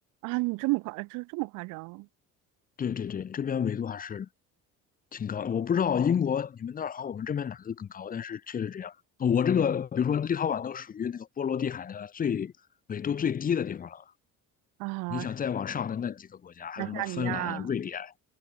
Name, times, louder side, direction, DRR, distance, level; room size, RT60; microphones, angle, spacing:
voice 1, 0.2-2.1 14.8-15.3 16.8-17.7, right 25 dB, 75° right, 0.5 m, -32 dB
voice 2, 2.8-4.3 5.1-12.5 12.9-14.0 15.1-18.1, left 8 dB, 25° left, 0.8 m, -30 dB
cardioid pair, 135°, 32 cm